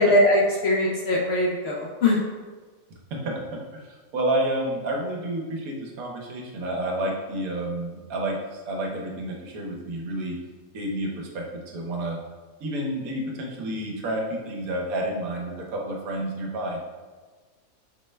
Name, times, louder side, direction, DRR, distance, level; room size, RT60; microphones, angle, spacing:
voice 1, 0.0-2.2, left 1 dB, 60° left, -2 dB, 0.7 m, -21 dB
voice 2, 3.2-10.4 10.7-12.2 12.6-16.9, right 1 dB, 80° right, 0 dB, 1.2 m, -30 dB
5.1 x 2.1 x 3.2 m, 1.4 s
omnidirectional pair, 1.5 m